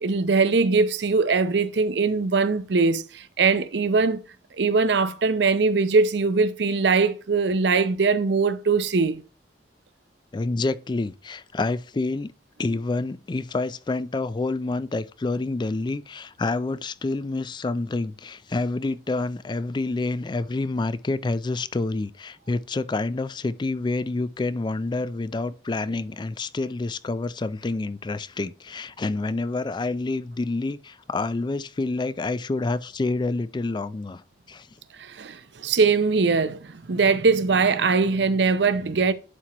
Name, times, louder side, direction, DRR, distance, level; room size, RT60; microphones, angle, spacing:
voice 1, 0.0-4.2 4.6-9.2 35.0-39.1, right 4 dB, 80° right, 0.6 m, -21 dB
voice 2, 10.3-12.3 12.6-34.2 34.5-34.7, left 3 dB, 25° left, 0.4 m, -28 dB
11.0 x 4.5 x 2.9 m
head